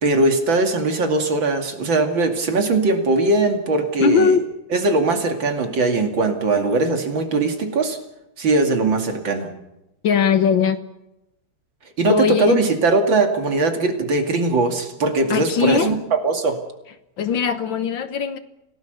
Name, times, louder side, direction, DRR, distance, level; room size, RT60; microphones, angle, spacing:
voice 1, 0.0-4.4 4.7-8.0 8.4-9.5 12.0-16.6, right 3 dB, 60° right, 5 dB, 3.1 m, -20 dB
voice 2, 4.0-4.4 10.0-10.8 12.1-12.7 15.3-15.9 17.2-18.4, left 6 dB, 65° left, 11 dB, 1.8 m, -19 dB
28.0 x 18.0 x 6.7 m, 0.92 s
omnidirectional pair, 2.4 m